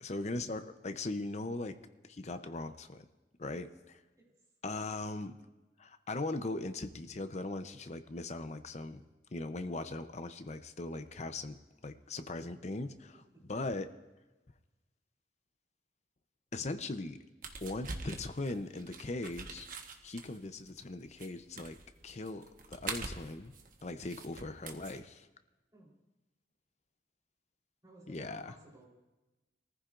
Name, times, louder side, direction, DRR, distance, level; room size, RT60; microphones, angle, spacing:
voice 1, 0.0-1.8 2.0-3.1 3.4-4.0 4.6-5.4 5.8-9.0 9.3-13.9 16.5-17.2 17.6-19.7 20.0-21.8 22.0-23.5 23.8-25.3 28.1-28.5, left 2 dB, 40° left, 9 dB, 0.7 m, -39 dB
sound 1, 17.4-25.0, right 4 dB, 50° right, 1.2 m, -45 dB
voice 2, 27.8-28.9, right 2 dB, 20° right, -4 dB, 3.8 m, -57 dB
24.0 x 14.5 x 2.6 m, 1.1 s
head